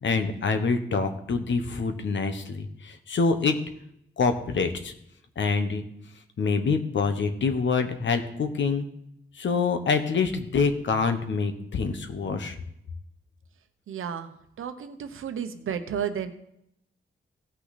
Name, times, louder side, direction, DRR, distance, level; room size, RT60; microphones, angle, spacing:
voice 1, 0.0-3.5 4.2-4.9 5.4-5.8 6.4-8.8 9.4-12.5, left 4 dB, 65° left, 8 dB, 1.2 m, -26 dB
voice 2, 13.9-14.3 14.6-16.3, right 8 dB, 90° right, 9 dB, 0.9 m, -32 dB
16.5 x 6.0 x 4.1 m, 0.74 s
wide cardioid pair, 100°, 20 cm